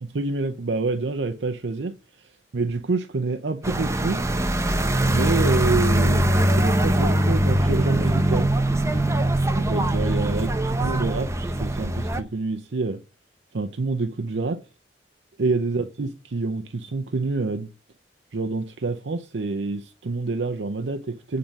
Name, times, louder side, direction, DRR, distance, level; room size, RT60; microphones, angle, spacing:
voice 1, 0.0-4.2 5.1-8.5 9.5-13.0 13.5-14.6 15.4-17.7 18.3-21.4, right 3 dB, 90° right, 0.6 m, -27 dB
sound 1, 3.6-12.2, right 1 dB, 15° right, 0.7 m, -22 dB
8.8 x 3.8 x 5.3 m
head